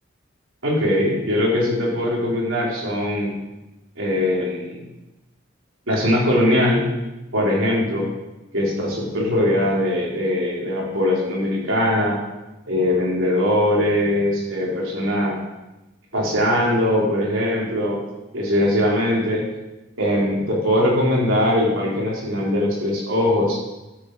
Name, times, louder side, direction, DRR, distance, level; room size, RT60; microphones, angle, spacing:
voice 1, 0.6-3.3 4.0-4.8 5.9-6.8 7.3-8.1 8.5-12.2 12.7-15.3 16.1-18.0 18.3-19.4 20.0-23.6, left 1 dB, 85° right, -4 dB, 3.7 m, -21 dB
13.0 x 7.6 x 4.7 m, 1.0 s
head